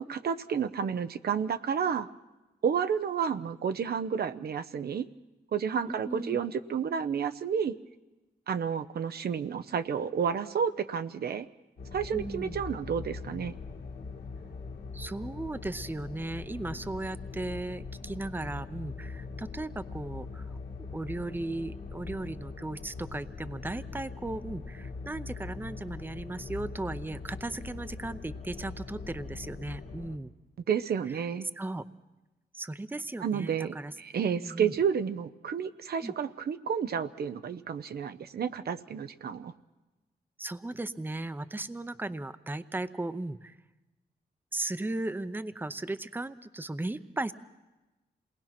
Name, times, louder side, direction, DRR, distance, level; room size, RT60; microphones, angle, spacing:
voice 1, 0.0-2.1 2.6-5.1 5.5-7.8 8.5-11.5 11.9-13.5 30.7-31.5 33.2-39.5, right 7 dB, 65° right, 10 dB, 0.8 m, -31 dB
voice 2, 5.9-6.4 12.1-12.6 14.9-20.5 20.9-30.3 31.6-31.9 32.5-33.9 34.3-34.7 36.0-36.1 40.4-43.6 44.5-47.3, right 2 dB, 10° right, 13 dB, 0.7 m, -36 dB
sound 1, 11.8-30.2, left 4 dB, 80° left, 2.0 m, -42 dB
27.0 x 19.5 x 6.0 m, 1.1 s
cardioid pair, 70°, 17 cm